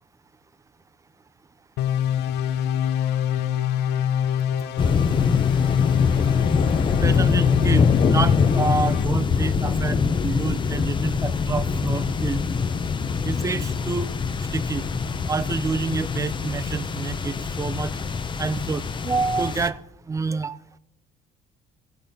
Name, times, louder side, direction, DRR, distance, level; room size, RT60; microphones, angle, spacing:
sound 1, 1.8-9.0, left 9 dB, 80° left, 0.6 m, -24 dB
sound 2, 4.8-19.7, left 5 dB, 30° left, 0.6 m, -24 dB
voice 1, 7.0-9.9 10.2-12.4 13.2-14.1 14.5-14.9 15.3-17.9 18.4-19.8 20.1-20.6, right 4 dB, 20° right, 0.5 m, -27 dB
15.0 x 7.2 x 5.2 m
cardioid pair, 110°, 17 cm